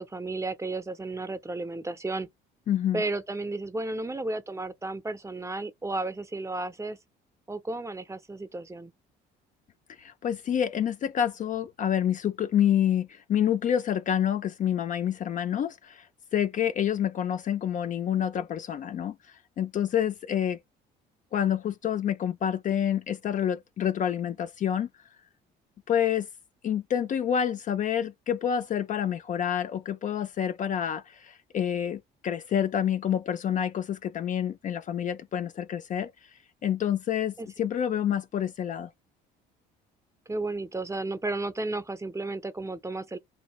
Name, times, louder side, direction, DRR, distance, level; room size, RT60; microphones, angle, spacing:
voice 1, 0.0-2.3 2.9-7.0 7.5-8.9 37.4-37.5 40.3-43.2, right 2 dB, 15° right, 0.5 m, -33 dB
voice 2, 2.7-3.0 10.0-16.0 16.3-19.2 19.6-20.6 21.3-24.9 25.9-26.3 26.6-36.1 36.6-38.9, left 9 dB, 40° left, 0.4 m, -28 dB
2.7 x 2.5 x 3.0 m
supercardioid pair, 75°, 20 cm